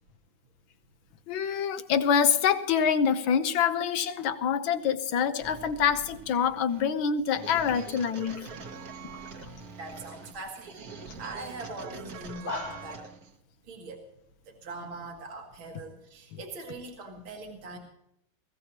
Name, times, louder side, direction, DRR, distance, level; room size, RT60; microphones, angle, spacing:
voice 1, 1.3-8.5 16.3-16.4, left 7 dB, 70° left, 1.7 m, -26 dB
sound 1, 5.4-13.4, right 5 dB, 50° right, 1.5 m, -44 dB
sound 2, 7.3-7.4 7.6-9.6 9.9-10.4 10.7-10.8 11.1-11.3 11.6-11.7 12.2-13.0, left 3 dB, 90° left, 3.0 m, -41 dB
voice 2, 9.8-10.7 11.2-13.1 13.7-14.0 14.5-17.8, right 2 dB, 70° right, 2.6 m, -41 dB
20.5 x 16.5 x 2.9 m
omnidirectional pair, 2.3 m